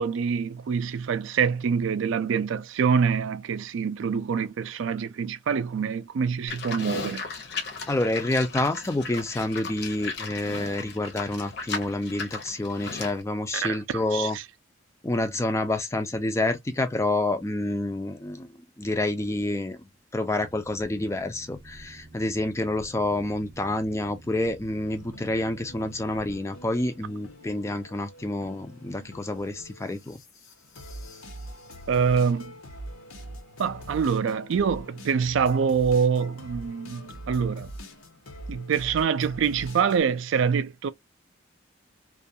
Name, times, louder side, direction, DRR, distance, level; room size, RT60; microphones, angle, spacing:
voice 1, 0.0-7.2 13.6-14.4 31.9-32.5 33.6-37.7 38.5-40.9, right 6 dB, 65° right, 0.3 m, -25 dB
Livestock farm animals working animals, 6.5-13.2, left 4 dB, 50° left, 0.7 m, -36 dB
voice 2, 7.9-14.4 15.0-18.5 18.8-19.8 20.1-30.2, left 2 dB, 15° left, 0.3 m, -28 dB
Boat Water vehicle, 20.4-26.4, right 1 dB, 25° right, 0.7 m, -49 dB
sound 1, 24.8-40.0, equal, 85° left, 0.9 m, -44 dB
2.4 x 2.2 x 2.6 m
head